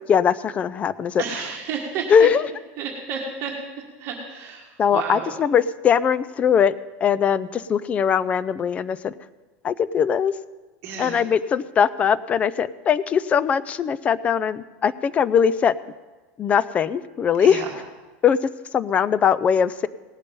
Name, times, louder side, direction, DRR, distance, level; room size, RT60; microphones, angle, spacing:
voice 1, 0.1-1.2 2.1-2.4 4.8-6.7 7.0-9.1 9.6-10.3 11.0-15.7 16.4-17.6 18.2-18.4 18.7-19.9, left 7 dB, 20° left, 16 dB, 0.3 m, -20 dB
voice 2, 1.2-2.1 2.8-4.7 4.9-5.3 10.8-11.2 17.4-17.7, right 6 dB, 35° right, 0 dB, 1.7 m, -31 dB
18.0 x 6.9 x 5.3 m, 1.2 s
supercardioid pair, 155°, 7 cm